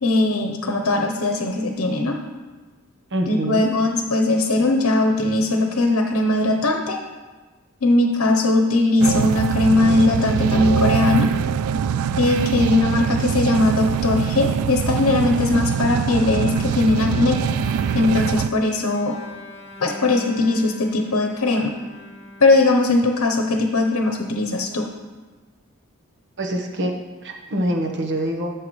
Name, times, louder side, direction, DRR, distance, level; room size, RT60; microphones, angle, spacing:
voice 1, 0.0-2.2 3.3-7.0 7.8-11.3 12.2-17.4 17.9-19.2 19.8-21.7 22.4-24.9, left 2 dB, 75° left, 3 dB, 0.8 m, -19 dB
voice 2, 3.1-3.7 26.4-26.9 27.2-28.5, right 1 dB, 55° right, 2 dB, 1.1 m, -25 dB
sound 1, 9.0-18.5, right 7 dB, 80° right, 0.3 m, -23 dB
Bowed string instrument, 15.9-23.2, left 2 dB, 30° left, 1.3 m, -41 dB
13.0 x 6.7 x 3.2 m, 1.3 s
head